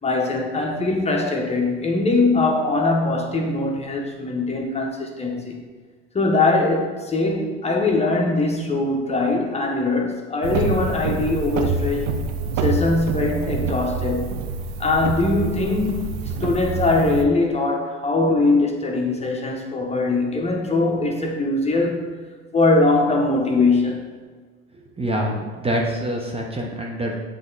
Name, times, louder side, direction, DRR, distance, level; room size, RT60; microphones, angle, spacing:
voice 1, 0.0-5.6 6.1-12.1 12.6-14.4 14.8-22.2 22.5-24.0, left 2 dB, 20° left, 0 dB, 1.1 m, -21 dB
sound 1, 10.4-17.2, right 4 dB, 70° right, 0.7 m, -27 dB
voice 2, 25.0-27.2, right 1 dB, 20° right, 0 dB, 0.9 m, -25 dB
7.5 x 3.4 x 4.0 m, 1.5 s
hypercardioid pair, 85°, 30 cm